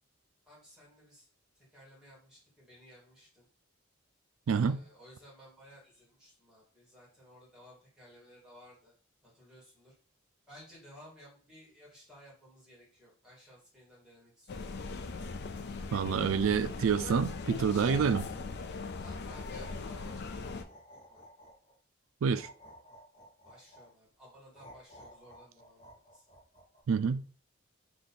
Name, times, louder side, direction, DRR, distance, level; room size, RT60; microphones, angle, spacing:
voice 1, 0.5-1.3 1.5-3.5 4.5-8.9 9.2-9.9 10.5-14.7 18.9-20.8 21.1-21.3 23.4-26.3, equal, 5° right, 2.2 m, -57 dB
voice 2, 4.5-4.8 15.9-18.3 22.2-22.5 26.9-27.2, right 6 dB, 80° right, 0.4 m, -28 dB
sound 1, 14.5-20.6, left 4 dB, 55° left, 0.5 m, -39 dB
sound 2, 18.9-21.8 22.3-23.9 24.5-26.8, equal, 30° left, 1.3 m, -54 dB
3.9 x 3.0 x 4.2 m
head